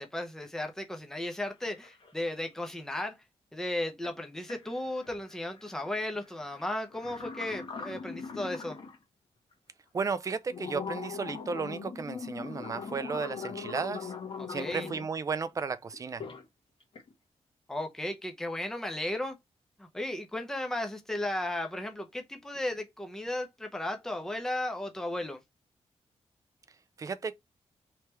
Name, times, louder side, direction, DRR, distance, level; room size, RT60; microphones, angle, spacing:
voice 1, 0.0-3.2 3.5-8.8 14.4-14.9 17.7-19.4 19.8-25.4, left 1 dB, 5° left, 0.7 m, -35 dB
sound 1, 1.3-1.4 1.6-2.4 4.0-4.1 4.5-9.0 9.5-9.6 10.2-15.1 15.9-16.4 16.8-17.1, left 5 dB, 50° left, 1.3 m, -41 dB
voice 2, 9.9-14.1 14.5-16.2 27.0-27.3, right 5 dB, 30° right, 0.4 m, -34 dB
3.3 x 3.1 x 4.5 m
wide cardioid pair, 170°, 11 cm